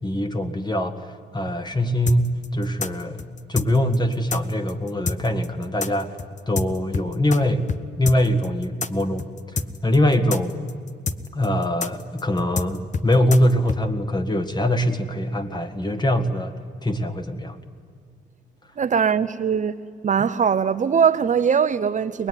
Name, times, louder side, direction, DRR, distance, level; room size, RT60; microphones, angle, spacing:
voice 1, 0.0-3.2 3.5-6.2 6.5-7.7 8.0-10.5 11.3-16.5 16.8-17.6, left 1 dB, 20° left, 1.9 m, -23 dB
sound 1, 2.1-7.4 7.7-13.8, left 4 dB, 40° left, 1.1 m, -28 dB
voice 2, 18.8-19.7 20.0-22.3, right 7 dB, 40° right, 0.6 m, -21 dB
23.0 x 20.5 x 9.8 m
cardioid pair, 90°, 20 cm